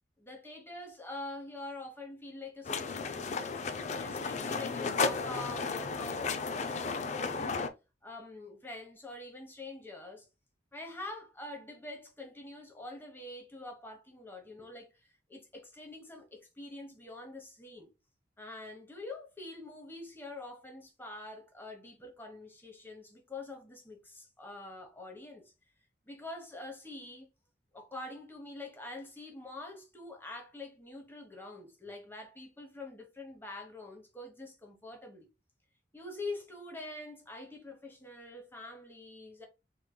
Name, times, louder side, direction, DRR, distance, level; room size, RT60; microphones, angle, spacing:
voice 1, 0.2-7.5 8.0-10.3 10.7-14.9 15.3-17.9 18.4-25.5 26.0-27.3 27.7-35.3 35.9-39.5, left 2 dB, 10° left, 1.0 m, -45 dB
sound 1, 2.6-7.7, left 4 dB, 40° left, 0.4 m, -34 dB
3.7 x 3.3 x 2.2 m
head